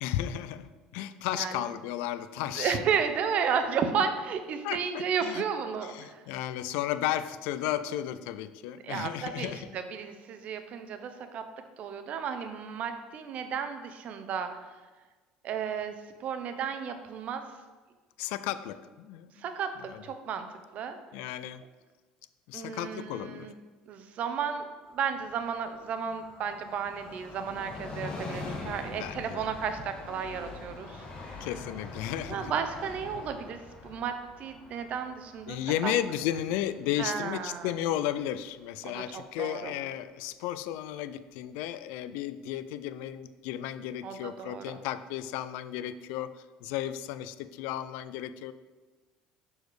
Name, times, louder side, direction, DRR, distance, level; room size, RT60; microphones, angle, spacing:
voice 1, 0.0-2.8 4.6-5.4 5.9-9.7 18.2-19.4 19.9-20.0 21.1-21.6 22.5-23.5 28.6-28.7 29.0-29.5 31.4-32.5 35.5-46.3 46.6-48.5, left 12 dB, 80° left, 13 dB, 0.4 m, -34 dB
voice 2, 1.3-1.6 2.5-6.2 8.8-11.5 11.8-14.7 15.4-15.9 16.2-17.4 19.4-21.0 22.5-23.6 23.9-24.7 24.9-31.0 32.3-35.9 37.0-37.7 38.8-39.7 44.0-44.8, right 7 dB, 55° right, 8 dB, 0.7 m, -33 dB
Train, 24.8-38.2 38.5-38.6, left 3 dB, 35° left, 1.6 m, -44 dB
6.8 x 4.3 x 4.8 m, 1.3 s
supercardioid pair, 100°, 3 cm